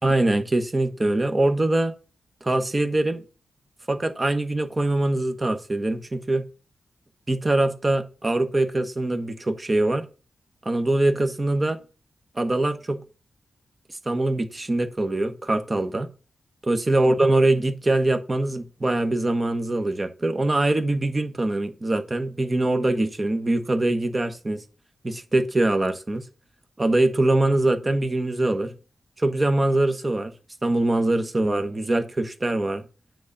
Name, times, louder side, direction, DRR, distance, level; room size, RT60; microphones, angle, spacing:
voice 1, 0.0-1.9 2.4-3.2 3.9-6.4 7.3-10.0 10.6-11.8 12.3-13.0 14.0-16.1 16.6-24.6 25.0-26.2 26.8-28.7 29.2-30.3 30.6-32.8, right 2 dB, 25° right, 1.2 m, -23 dB
9.5 x 3.9 x 7.0 m
wide cardioid pair, 100°, 0 cm